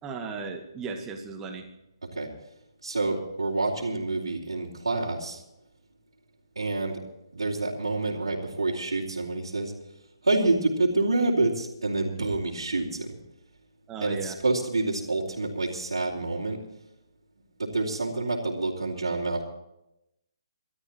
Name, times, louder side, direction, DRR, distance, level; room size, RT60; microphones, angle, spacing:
voice 1, 0.0-1.7 13.9-14.3, right 5 dB, 15° right, 4 dB, 2.0 m, -36 dB
voice 2, 2.8-5.4 6.6-7.0 7.3-9.7 10.2-13.2 14.0-16.6 17.6-19.4, right 2 dB, 75° right, -6 dB, 3.5 m, -27 dB
29.0 x 13.0 x 3.0 m, 0.86 s
figure-of-eight pair, 145°, 3 cm